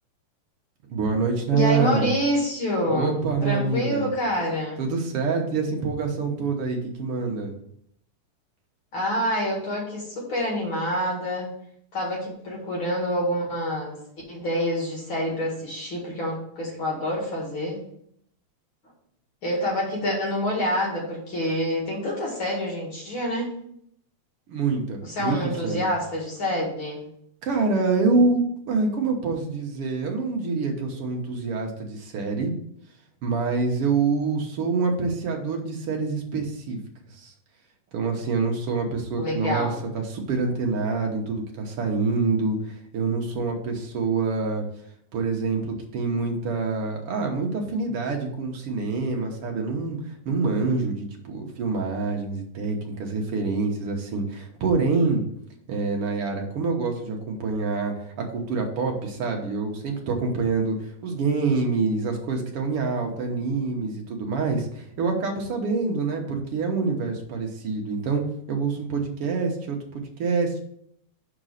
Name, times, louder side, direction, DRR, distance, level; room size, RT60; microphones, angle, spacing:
voice 1, 0.9-2.1 2.9-4.1 4.8-7.5 24.5-25.9 27.4-32.5 33.2-36.8 37.1-37.3 37.9-44.6 45.1-55.2 55.7-68.2 68.5-70.6, right 4 dB, 60° right, 2 dB, 1.7 m, -26 dB
voice 2, 1.5-4.8 8.9-11.5 11.9-14.0 14.3-17.8 19.4-23.5 25.0-27.1 39.2-39.8, equal, 45° left, -3 dB, 2.5 m, -27 dB
5.2 x 5.0 x 6.4 m, 0.70 s
omnidirectional pair, 3.5 m